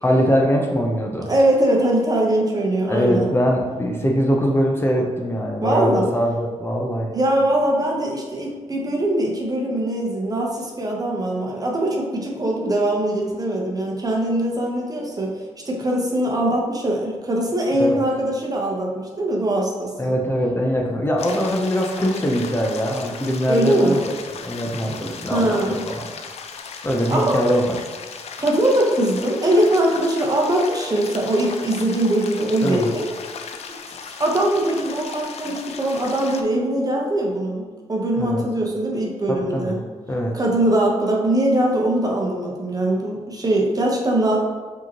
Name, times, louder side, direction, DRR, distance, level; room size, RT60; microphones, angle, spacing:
voice 1, 0.0-1.3 2.9-7.1 17.8-18.0 20.0-24.0 24.4-26.1 26.8-27.8 32.6-32.9 38.2-38.4 39.5-39.8 40.1-40.3, equal, 20° left, -1 dB, 0.6 m, -22 dB
voice 2, 1.3-3.3 5.6-6.1 7.1-15.3 15.6-20.1 23.5-24.0 25.3-25.9 27.1-27.4 28.4-33.1 34.2-37.6 37.9-39.8 40.3-44.4, right 1 dB, 30° right, -1 dB, 0.9 m, -21 dB
sound 1, 21.2-36.4, left 6 dB, 65° left, 0.4 m, -36 dB
4.9 x 2.9 x 2.9 m, 1.4 s
cardioid pair, 65°, 12 cm